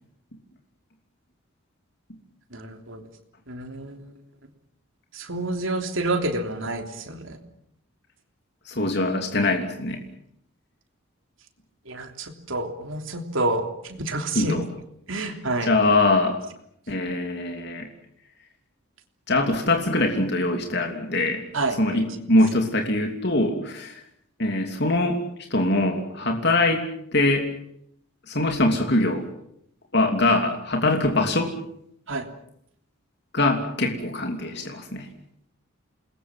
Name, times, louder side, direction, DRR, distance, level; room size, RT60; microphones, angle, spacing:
voice 1, 2.5-3.0 3.5-4.1 5.1-7.4 11.8-14.6 15.1-15.8 21.5-22.1 32.1-32.3, right 2 dB, 65° right, 5 dB, 3.3 m, -29 dB
voice 2, 8.7-10.0 14.3-14.6 15.7-16.4 16.9-17.9 19.3-21.4 21.8-24.0 24.4-25.2 25.5-26.8 27.1-27.5 28.3-29.2 29.9-31.5 33.3-35.1, left 2 dB, 50° left, 3 dB, 3.1 m, -23 dB
28.5 x 21.0 x 7.5 m, 0.73 s
head